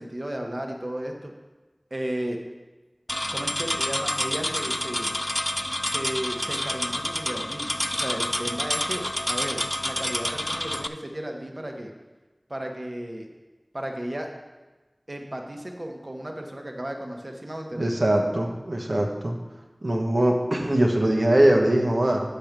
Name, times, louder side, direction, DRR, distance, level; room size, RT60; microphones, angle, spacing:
voice 1, 0.0-1.3 1.9-2.4 3.3-5.1 5.8-11.9 12.5-13.3 13.7-14.3 15.1-17.9, right 1 dB, 45° right, 2 dB, 1.2 m, -34 dB
sound 1, 3.1-10.9, left 1 dB, 20° left, 0.4 m, -28 dB
voice 2, 17.7-19.4 19.8-22.2, right 1 dB, 75° right, 1 dB, 1.2 m, -22 dB
8.0 x 5.2 x 6.0 m, 1.2 s
wide cardioid pair, 40°, 0 cm